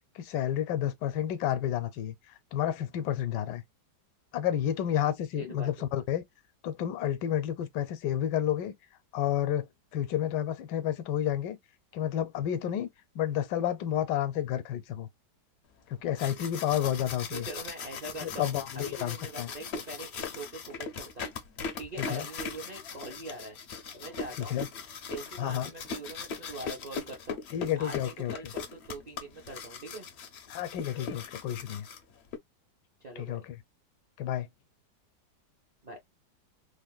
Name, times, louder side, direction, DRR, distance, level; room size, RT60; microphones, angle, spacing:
voice 1, 0.1-2.1 2.5-3.6 4.3-6.2 6.6-8.7 9.1-11.6 11.9-12.9 13.1-15.1 15.9-17.5 18.2-19.5 22.0-22.3 24.5-24.7 25.4-25.7 27.5-28.3 30.5-31.9 33.2-33.4 34.2-34.5, left 10 dB, 80° left, 1.2 m, -30 dB
voice 2, 5.4-5.9 17.3-21.3 21.7-23.6 23.9-24.6 25.1-27.4 27.8-30.1 33.0-33.4 35.8-36.0, right 2 dB, 40° right, 0.5 m, -43 dB
sound 1, 15.9-32.4, left 5 dB, 65° left, 0.6 m, -40 dB
3.4 x 2.2 x 2.3 m
omnidirectional pair, 1.8 m